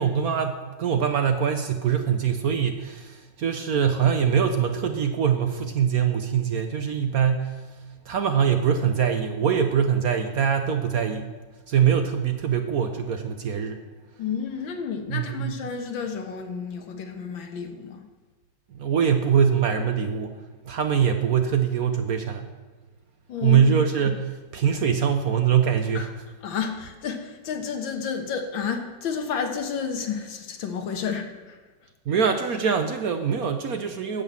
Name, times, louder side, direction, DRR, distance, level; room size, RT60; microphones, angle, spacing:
voice 1, 0.0-11.3 11.7-13.8 15.1-15.6 18.7-22.5 23.4-26.1 32.1-34.2, right 7 dB, 60° right, 1.0 m, -23 dB
voice 2, 14.2-18.0 23.3-23.7 26.0-26.1 26.4-31.6, left 6 dB, 75° left, 2.0 m, -31 dB
9.6 x 7.8 x 7.6 m
omnidirectional pair, 2.1 m